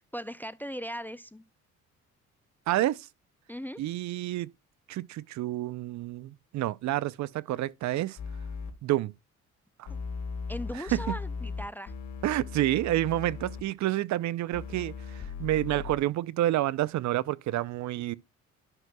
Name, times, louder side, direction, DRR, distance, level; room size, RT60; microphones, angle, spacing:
voice 1, 0.1-1.4 3.5-3.8 9.9-10.0 10.5-11.9, equal, 5° left, 0.3 m, -38 dB
voice 2, 2.7-3.1 3.8-4.5 4.9-8.2 8.8-9.1 9.8-9.9 10.9-11.0 12.2-18.2, right 14 dB, 70° right, 0.5 m, -29 dB
sound 1, 8.2-8.7 9.9-13.6 14.5-16.0, left 5 dB, 70° left, 1.8 m, -38 dB
11.0 x 6.0 x 2.2 m
cardioid pair, 90°, 30 cm